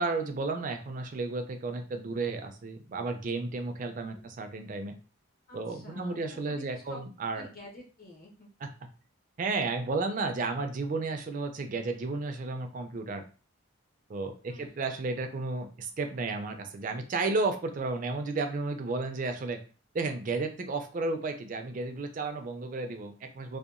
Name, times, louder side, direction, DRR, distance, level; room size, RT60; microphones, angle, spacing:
voice 1, 0.0-5.0 5.5-7.5 8.6-8.7 9.4-13.2 14.1-19.6 19.9-23.6, right 3 dB, 40° right, 6 dB, 0.3 m, -33 dB
voice 2, 3.8-4.2 5.5-7.0 7.3-8.5 14.5-14.7, left 1 dB, 45° left, -2 dB, 0.8 m, -50 dB
2.7 x 2.2 x 2.4 m, 0.36 s
head